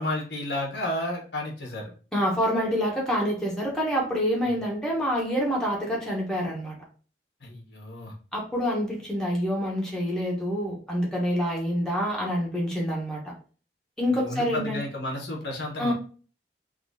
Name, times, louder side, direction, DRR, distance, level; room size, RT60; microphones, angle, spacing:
voice 1, 0.0-1.9 4.4-4.5 7.4-8.1 14.2-15.9, left 1 dB, 75° left, 0 dB, 1.1 m, -32 dB
voice 2, 2.1-6.7 8.3-13.3 14.0-14.8 15.8-15.9, equal, 5° left, -3 dB, 1.1 m, -27 dB
3.7 x 2.8 x 2.7 m, 0.38 s
head